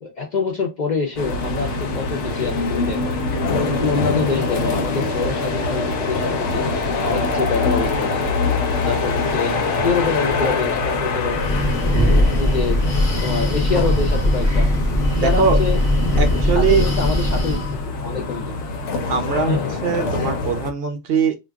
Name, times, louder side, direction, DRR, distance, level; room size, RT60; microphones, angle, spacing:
voice 1, 0.0-3.1 3.7-6.6 7.0-8.4 8.8-11.4 12.4-12.8 13.2-14.7 15.1-15.8 16.3-18.5 19.5-19.7, left 5 dB, 55° left, 0.5 m, -25 dB
sound 1, 1.2-20.7, left 3 dB, 85° left, 0.9 m, -24 dB
Breathing, 11.2-17.8, left 1 dB, 35° left, 0.8 m, -19 dB
voice 2, 15.2-15.6 16.2-16.9 19.1-21.3, right 5 dB, 65° right, 0.7 m, -21 dB
2.2 x 2.2 x 3.4 m
omnidirectional pair, 1.2 m